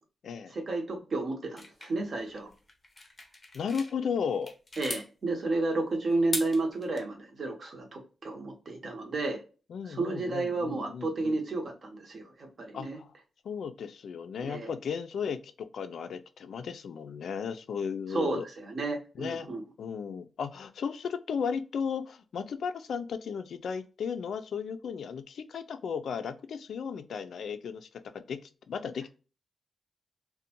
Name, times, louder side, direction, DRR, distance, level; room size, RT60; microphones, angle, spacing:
voice 1, 0.5-2.5 4.8-9.4 9.9-13.0 14.4-14.7 18.1-19.6, right 2 dB, 45° right, 3 dB, 0.7 m, -32 dB
sound 1, 1.6-3.9 4.3-5.1 6.1-7.0, left 2 dB, 25° left, 0.5 m, -39 dB
voice 2, 3.5-4.5 9.7-11.4 12.7-13.1 13.4-18.5 19.2-19.5 19.8-27.9 28.1-29.1, left 6 dB, 75° left, 9 dB, 0.3 m, -35 dB
2.5 x 2.1 x 2.7 m, 0.35 s
wide cardioid pair, 130°, 0 cm